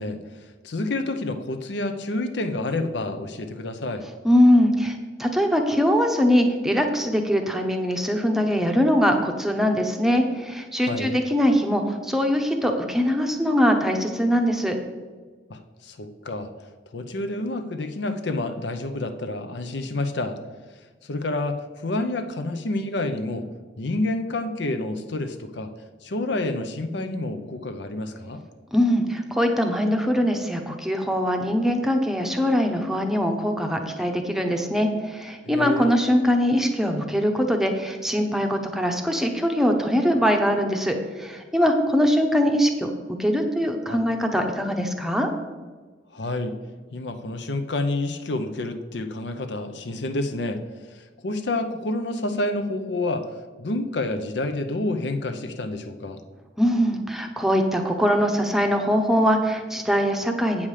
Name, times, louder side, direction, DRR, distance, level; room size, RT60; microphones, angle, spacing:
voice 1, 0.0-4.1 10.8-11.2 15.5-16.5 16.9-20.4 21.1-23.5 23.8-25.7 26.0-28.4 35.4-36.0 43.9-44.0 46.1-46.5 46.9-50.6 50.9-56.2, left 2 dB, 65° left, 8 dB, 0.7 m, -29 dB
voice 2, 4.2-14.8 28.7-42.9 43.2-45.3 56.6-60.7, equal, ahead, 3 dB, 0.8 m, -22 dB
8.6 x 7.2 x 4.9 m, 1.4 s
head